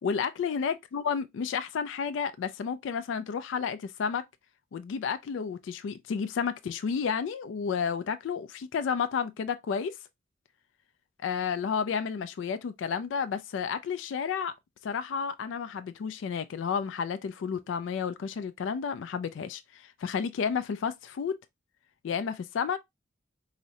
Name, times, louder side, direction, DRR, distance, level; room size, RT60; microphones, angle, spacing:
voice 1, 0.0-4.2 4.7-10.0 11.2-14.5 14.8-21.4 22.0-22.8, left 6 dB, 85° left, 0.3 m, -31 dB
4.8 x 2.0 x 2.7 m
head